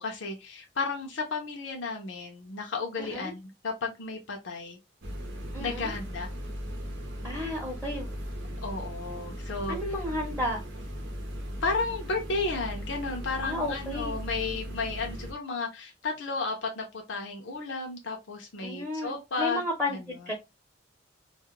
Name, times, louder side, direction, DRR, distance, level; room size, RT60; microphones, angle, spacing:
voice 1, 0.0-4.8 5.6-6.3 8.6-9.8 11.6-19.6 19.9-20.0, left 4 dB, 75° left, 2 dB, 0.6 m, -33 dB
voice 2, 3.0-3.3 5.5-5.9 7.2-8.1 9.7-10.6 13.4-14.2 18.6-20.0 20.3-20.4, left 1 dB, 5° right, -3 dB, 0.7 m, -32 dB
sound 1, 5.0-15.3, equal, 70° right, 0.7 m, -38 dB
2.3 x 2.1 x 2.9 m, 0.23 s
head